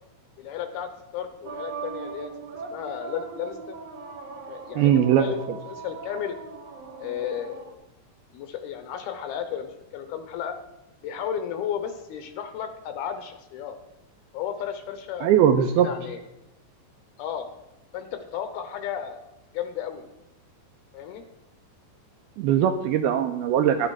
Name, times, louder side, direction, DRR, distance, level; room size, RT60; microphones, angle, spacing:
voice 1, 0.4-2.3 2.7-3.8 4.5-4.9 5.2-6.4 7.0-7.8 8.3-10.6 11.0-13.8 14.3-15.3 15.6-16.2 17.2-17.5 17.9-19.2 19.5-20.0 20.9-21.2, left 9 dB, 75° left, 8 dB, 2.4 m, -33 dB
sound 1, 1.4-7.7, right 5 dB, 65° right, 1.6 m, -39 dB
voice 2, 4.8-5.3 15.2-15.9 22.4-23.9, right 9 dB, 85° right, 6 dB, 2.2 m, -20 dB
10.5 x 9.8 x 4.7 m, 0.95 s
omnidirectional pair, 5.0 m